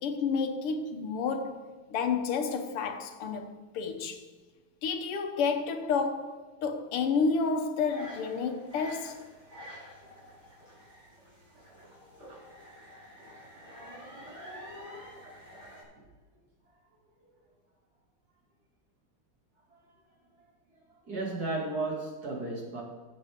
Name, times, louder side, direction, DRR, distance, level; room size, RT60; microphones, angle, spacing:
voice 1, 0.0-4.3 4.8-9.3, left 5 dB, 85° left, 1.9 m, -30 dB
sound 1, 7.9-15.8, equal, 30° right, 3.6 m, -48 dB
voice 2, 21.1-22.8, right 2 dB, 45° right, 2.7 m, -33 dB
15.5 x 7.0 x 3.6 m
omnidirectional pair, 2.4 m